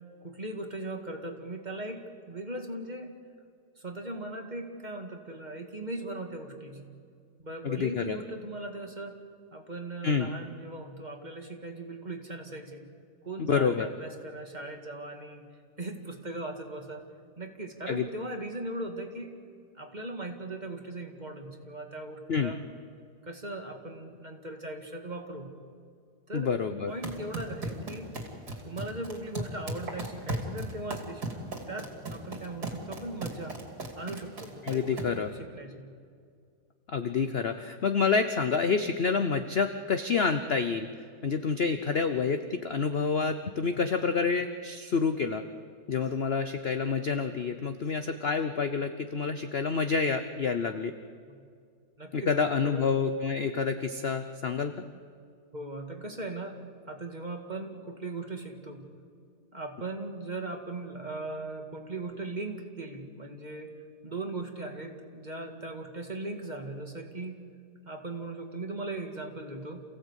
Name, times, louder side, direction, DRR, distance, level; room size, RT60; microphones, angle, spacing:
voice 1, 0.2-3.1 3.8-6.9 7.4-9.2 9.5-12.9 13.2-15.5 15.8-17.0 17.4-19.4 19.7-22.6 23.2-25.5 26.3-26.5 26.9-28.1 28.6-33.6 34.0-35.9 51.3-51.4 52.0-52.9 55.5-56.6 56.9-58.9 59.5-63.7 64.0-67.4 67.9-69.8, right 2 dB, 25° right, 3 dB, 2.1 m, -39 dB
voice 2, 7.6-8.2 10.0-10.3 13.5-13.9 17.9-18.1 22.3-22.5 26.3-26.9 34.6-35.3 36.9-40.9 41.2-45.4 45.9-50.9 52.1-54.7, left 5 dB, 50° left, 9 dB, 0.8 m, -28 dB
sound 1, 26.9-35.3, right 2 dB, 65° right, 3.3 m, -37 dB
28.5 x 16.0 x 8.2 m, 2.2 s
omnidirectional pair, 1.8 m